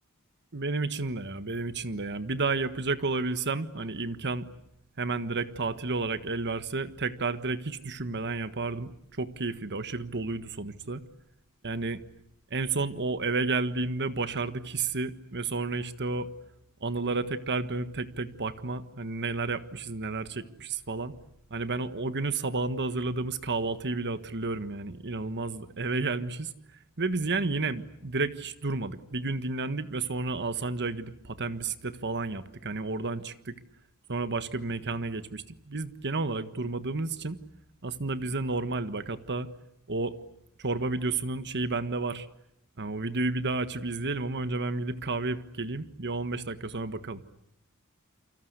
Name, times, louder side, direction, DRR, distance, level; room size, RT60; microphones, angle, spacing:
voice 1, 0.5-4.5 5.0-8.9 9.2-11.0 11.6-12.0 12.5-16.3 16.8-21.1 21.5-26.5 27.0-33.5 34.1-37.4 37.8-39.5 39.9-40.1 40.6-42.3 42.8-47.2, right 3 dB, 50° right, 12 dB, 1.5 m, -31 dB
29.0 x 24.5 x 8.1 m, 0.77 s
head